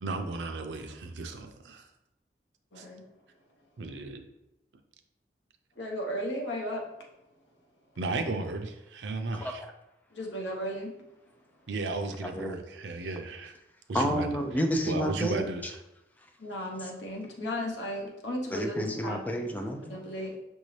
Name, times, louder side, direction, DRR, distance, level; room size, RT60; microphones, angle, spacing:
voice 1, 0.0-1.9 2.8-2.9 3.8-4.2 8.0-9.6 11.7-13.5 13.9-14.3 14.8-15.8, right 3 dB, 90° right, 6 dB, 0.5 m, -34 dB
voice 2, 2.7-3.0 5.8-6.9 10.1-10.9 16.4-19.4 19.9-20.4, equal, 90° left, 0 dB, 0.9 m, -35 dB
voice 3, 12.2-12.6 13.9-15.5 18.5-20.0, equal, 10° left, 4 dB, 0.3 m, -30 dB
5.9 x 2.7 x 3.2 m, 0.90 s
head